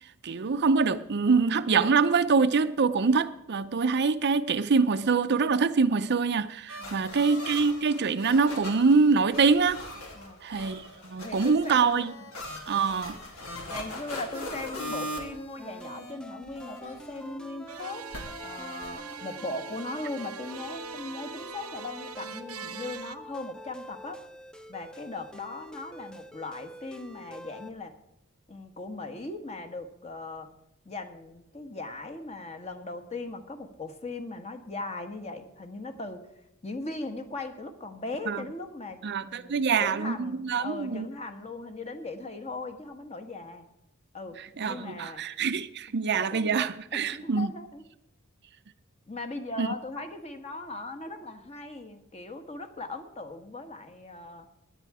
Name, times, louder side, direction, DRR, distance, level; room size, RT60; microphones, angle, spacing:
voice 1, 0.2-9.8 10.4-12.1 12.7-13.2 38.3-38.4 39.0-41.1 44.6-47.5 49.6-49.7, right 5 dB, 50° right, 0.6 m, -25 dB
sound 1, 6.7-16.1 16.4-17.3 18.1-18.9, left 1 dB, 85° left, 2.8 m, -40 dB
voice 2, 6.8-7.2 10.1-10.6 11.2-12.0 13.7-18.1 18.4-24.2 24.7-27.9 28.5-30.5 30.8-36.2 36.6-43.7 44.1-44.4 44.6-45.2 46.3-46.6 46.9-47.8 49.1-54.5, left 2 dB, 30° left, 1.3 m, -39 dB
sound 2, 15.6-27.7, equal, 5° left, 0.5 m, -46 dB
sound 3, 17.7-23.2, right 6 dB, 90° right, 0.9 m, -42 dB
17.5 x 10.0 x 4.8 m
head